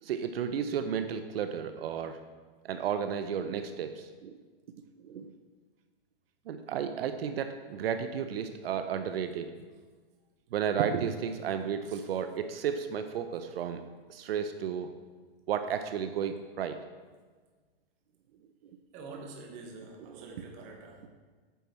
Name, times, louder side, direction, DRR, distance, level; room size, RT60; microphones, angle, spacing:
voice 1, 0.0-2.2 2.6-4.4 5.0-5.3 6.5-9.5 10.5-13.8 14.1-14.9 15.5-16.8 20.1-20.4, right 8 dB, 70° right, 8 dB, 0.7 m, -33 dB
voice 2, 18.9-21.1, right 3 dB, 25° right, 2 dB, 1.1 m, -46 dB
9.1 x 6.2 x 4.2 m, 1.4 s
hypercardioid pair, 165°, 30 cm